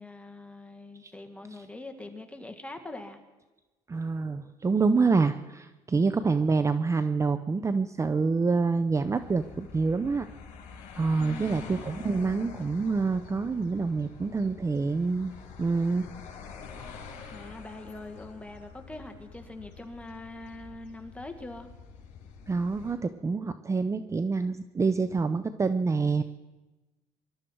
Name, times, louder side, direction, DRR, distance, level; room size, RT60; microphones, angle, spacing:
voice 1, 0.0-3.2 11.2-11.7 17.3-21.7, left 2 dB, 10° left, 5 dB, 2.1 m, -43 dB
voice 2, 3.9-10.3 11.0-15.3 15.6-16.1 22.5-26.2, right 4 dB, 25° right, 11 dB, 0.7 m, -27 dB
sound 1, 9.1-22.9, left 5 dB, 75° left, 4.7 m, -46 dB
24.5 x 12.5 x 4.6 m, 1.1 s
cardioid pair, 95°, 13 cm